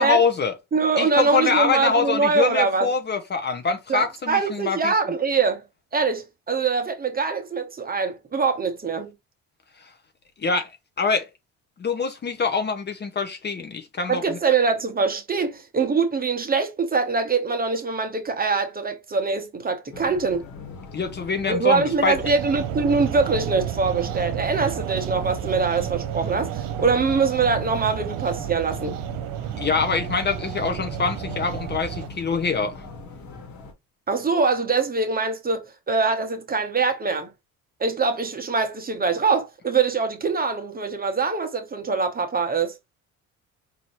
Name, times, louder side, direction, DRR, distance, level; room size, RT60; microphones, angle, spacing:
voice 1, 0.0-0.5 1.0-4.9 10.4-10.7 11.0-11.3 11.8-14.2 20.9-22.2 29.6-32.8, left 5 dB, 30° left, 0.7 m, -24 dB
voice 2, 0.7-2.9 3.9-5.6 5.9-9.1 14.1-20.4 21.5-29.0 34.1-37.3 37.8-42.7, right 4 dB, 25° right, 0.8 m, -23 dB
sound 1, 19.9-33.7, left 3 dB, 55° left, 1.4 m, -40 dB
sound 2, 22.2-32.1, right 12 dB, 70° right, 0.5 m, -31 dB
4.2 x 2.6 x 3.0 m
supercardioid pair, 85°, 34 cm